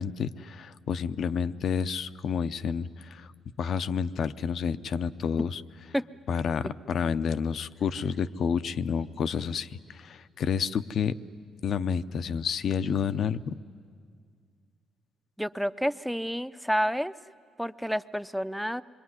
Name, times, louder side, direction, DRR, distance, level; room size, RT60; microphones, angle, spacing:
voice 1, 0.0-3.3 3.6-5.6 6.3-11.2 11.6-13.6, left 7 dB, 60° left, 13 dB, 0.7 m, -29 dB
voice 2, 15.4-17.1 17.6-18.8, equal, ahead, 12 dB, 0.6 m, -29 dB
26.0 x 23.0 x 9.7 m, 2.1 s
cardioid pair, 90°, 0 cm